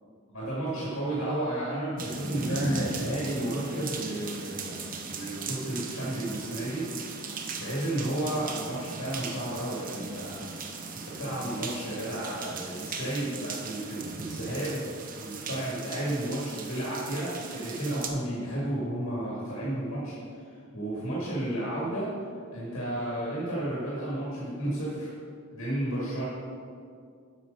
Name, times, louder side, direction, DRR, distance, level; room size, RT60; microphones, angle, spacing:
voice 1, 0.3-7.3 7.6-14.9 15.1-20.5 20.7-22.1 22.5-25.1 25.5-26.2, right 1 dB, 80° left, -7 dB, 2.1 m, -32 dB
sound 1, 2.0-18.1, right 4 dB, 40° right, 0.7 m, -38 dB
8.3 x 6.2 x 5.4 m, 2.3 s
head